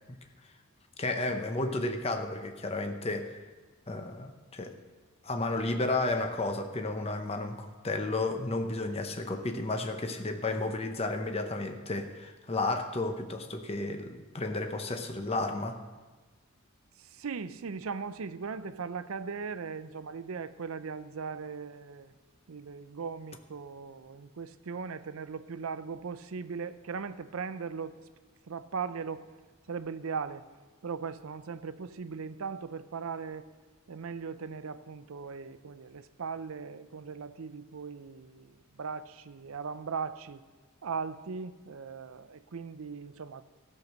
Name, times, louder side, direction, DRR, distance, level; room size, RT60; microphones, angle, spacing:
voice 1, 1.0-3.4 3.9-4.8 5.2-15.8, left 2 dB, 30° left, 6 dB, 0.7 m, -32 dB
voice 2, 17.0-22.1 22.5-28.0 28.5-29.3 29.7-30.5 30.8-33.4 33.9-40.4 40.8-43.4, right 5 dB, 75° right, 13 dB, 0.5 m, -38 dB
13.5 x 6.5 x 6.5 m, 1.3 s
head